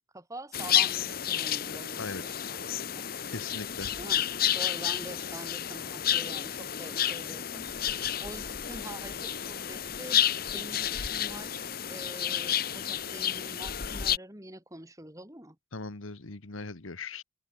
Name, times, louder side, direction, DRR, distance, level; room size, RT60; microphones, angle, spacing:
voice 1, 0.0-3.1 4.0-4.3 4.5-10.3 10.5-11.6 11.9-15.6, right 1 dB, 15° right, 3.5 m, -45 dB
sound 1, 0.5-14.2, left 10 dB, 45° left, 0.9 m, -31 dB
voice 2, 1.7-2.2 3.3-3.9 15.7-17.2, left 3 dB, 85° left, 1.5 m, -39 dB
head